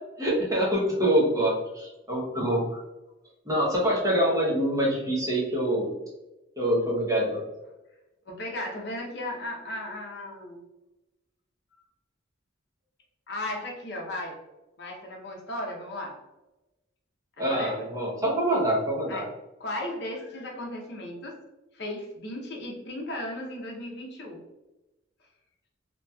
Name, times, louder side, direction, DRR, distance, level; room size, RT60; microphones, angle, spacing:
voice 1, 0.2-2.8 3.4-5.9 6.6-7.4 17.4-19.2, right 1 dB, 15° right, -4 dB, 0.9 m, -25 dB
voice 2, 8.3-10.6 11.7-11.8 13.3-14.4 14.8-16.2 17.4-17.9 19.1-19.3 19.6-21.4 21.7-24.4, left 1 dB, 55° left, 0 dB, 0.8 m, -36 dB
2.9 x 2.9 x 2.3 m, 1.0 s
head